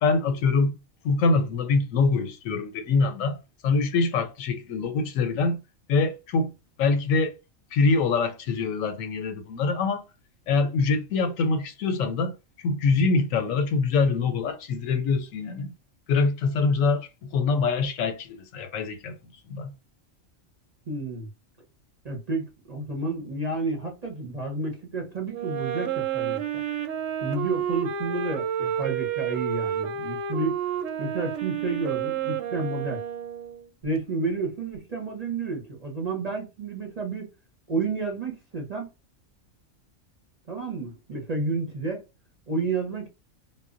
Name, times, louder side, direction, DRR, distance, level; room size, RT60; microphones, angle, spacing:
voice 1, 0.0-0.7 1.0-3.4 3.6-5.6 5.9-6.5 6.8-7.3 7.7-10.0 10.5-12.3 12.6-15.7 16.1-19.2 19.5-19.7, left 4 dB, 90° left, 1.0 m, -24 dB
voice 2, 20.9-21.3 22.0-26.4 27.2-30.6 31.0-33.0 33.8-37.3 37.7-38.9 40.5-42.0 42.5-43.1, right 3 dB, 40° right, 0.7 m, -30 dB
Wind instrument woodwind instrument, 25.3-33.7, right 9 dB, 75° right, 0.9 m, -30 dB
2.1 x 2.1 x 3.6 m
omnidirectional pair, 1.4 m